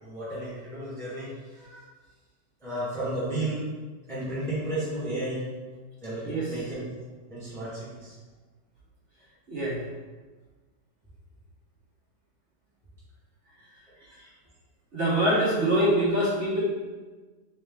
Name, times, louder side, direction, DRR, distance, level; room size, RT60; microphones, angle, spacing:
voice 1, 0.0-1.9 2.6-3.7 4.1-5.4 6.0-6.9 7.3-8.2 13.9-14.3, right 1 dB, ahead, -9 dB, 0.9 m, -33 dB
voice 2, 9.5-9.8 14.9-16.6, right 1 dB, 45° right, -8 dB, 1.4 m, -24 dB
3.6 x 3.2 x 3.4 m, 1.3 s
omnidirectional pair, 1.8 m